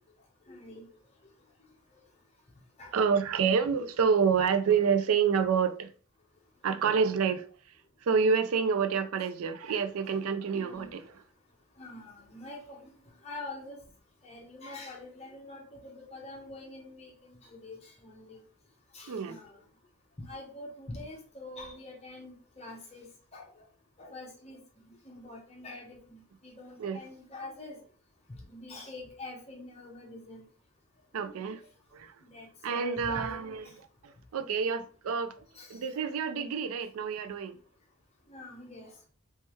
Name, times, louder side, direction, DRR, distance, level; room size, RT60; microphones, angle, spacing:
voice 1, 0.5-0.8 2.8-2.9 9.2-9.3 10.5-10.9 11.8-12.8 13.2-13.8 14.2-17.1 17.4-18.4 18.9-19.6 20.2-23.1 23.3-23.5 24.0-24.6 25.0-27.8 28.5-30.4 31.2-31.3 32.3-33.6 35.5-35.8 38.3-38.9, left 2 dB, 30° left, 0.9 m, -45 dB
voice 2, 2.9-5.9 6.6-7.5 8.0-11.2 19.1-19.4 26.8-27.0 31.1-31.6 31.9-32.1 32.6-37.6, right 6 dB, 80° right, 0.4 m, -28 dB
3.3 x 3.2 x 3.1 m
head